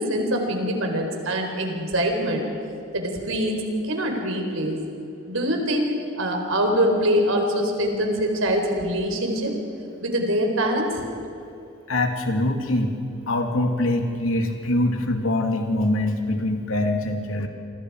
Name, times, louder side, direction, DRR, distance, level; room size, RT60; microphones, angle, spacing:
voice 1, 0.0-2.4 2.9-4.8 5.3-9.5 10.0-11.0, equal, 80° right, 3 dB, 4.3 m, -24 dB
voice 2, 11.9-13.0 13.3-17.5, left 1 dB, 85° left, 3 dB, 2.7 m, -23 dB
28.0 x 25.0 x 4.9 m, 2.6 s
head